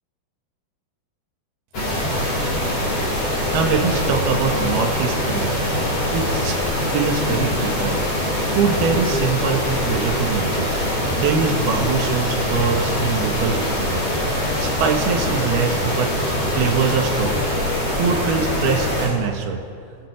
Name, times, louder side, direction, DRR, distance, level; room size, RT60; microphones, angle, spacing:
sound 1, 1.7-19.1, left 1 dB, 40° left, 8.1 m, -23 dB
voice 1, 3.4-5.6 6.1-6.6 6.9-8.0 8.5-10.7 11.2-14.0 14.6-16.1 16.5-17.4 17.9-19.6, right 5 dB, 75° right, 2 dB, 3.9 m, -23 dB
27.5 x 19.5 x 9.1 m, 2.4 s
omnidirectional pair, 4.6 m